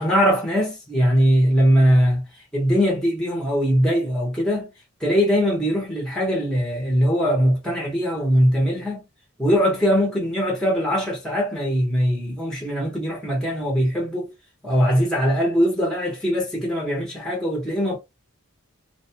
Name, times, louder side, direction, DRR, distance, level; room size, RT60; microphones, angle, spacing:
voice 1, 0.0-2.2 2.5-4.7 5.0-9.0 9.4-14.3 14.6-18.0, equal, 5° left, 0.7 m, -21 dB
2.5 x 2.1 x 2.7 m
head